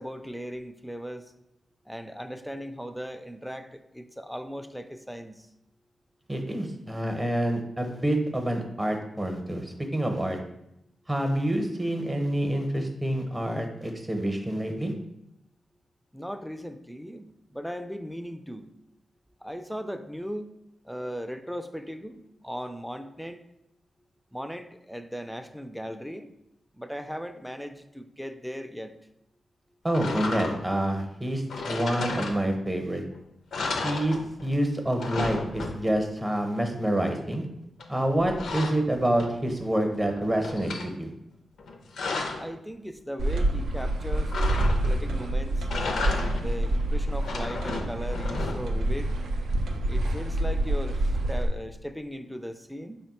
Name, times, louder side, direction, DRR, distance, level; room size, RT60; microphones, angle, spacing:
voice 1, 0.0-1.3 1.9-5.5 16.1-18.7 19.4-20.5 20.8-23.4 24.3-26.3 26.7-29.0 42.3-44.4 44.8-45.7 46.3-49.1 49.9-53.0, equal, ahead, 9 dB, 0.3 m, -38 dB
voice 2, 6.3-10.4 11.1-14.9 29.8-33.0 33.8-34.2 34.4-37.5 37.9-41.1, right 1 dB, 20° right, 4 dB, 0.7 m, -27 dB
sound 1, 29.9-30.8 31.5-32.8 33.1-33.2 33.5-34.6 34.8-36.1 37.8-39.6 40.0-40.9 41.6-42.5 44.3-45.1 45.6-46.6 47.1-48.9, left 3 dB, 85° left, 0.4 m, -33 dB
sound 2, 43.2-51.5, right 1 dB, 90° right, 0.4 m, -27 dB
4.2 x 2.1 x 4.1 m, 0.82 s
cardioid pair, 65°, 0 cm